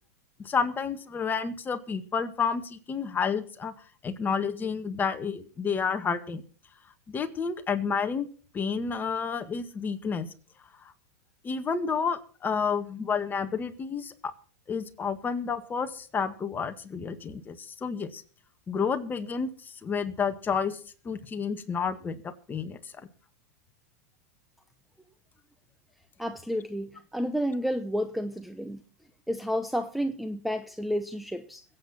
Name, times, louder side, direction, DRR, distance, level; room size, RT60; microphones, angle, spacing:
voice 1, 0.4-3.7 4.0-6.4 7.1-8.3 8.5-10.3 11.4-14.3 14.7-18.2 18.7-20.8 21.1-22.2 22.5-22.8, left 6 dB, 20° left, 8 dB, 1.9 m, -30 dB
voice 2, 26.2-28.8 29.3-31.6, equal, ahead, 9 dB, 0.9 m, -31 dB
22.5 x 8.7 x 4.3 m, 0.41 s
hypercardioid pair, 110°, 8 cm